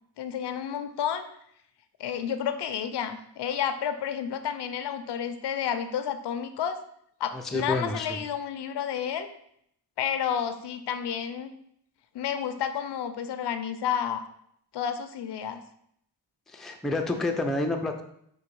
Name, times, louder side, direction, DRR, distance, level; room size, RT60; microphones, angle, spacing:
voice 1, 0.2-1.3 2.0-6.8 7.2-9.3 10.0-11.5 12.1-14.3 14.7-15.6, left 8 dB, 70° left, 9 dB, 0.5 m, -31 dB
voice 2, 7.3-8.2 16.5-18.0, left 2 dB, ahead, 3 dB, 0.4 m, -29 dB
3.8 x 2.7 x 4.5 m, 0.71 s
cardioid pair, 85°, 42 cm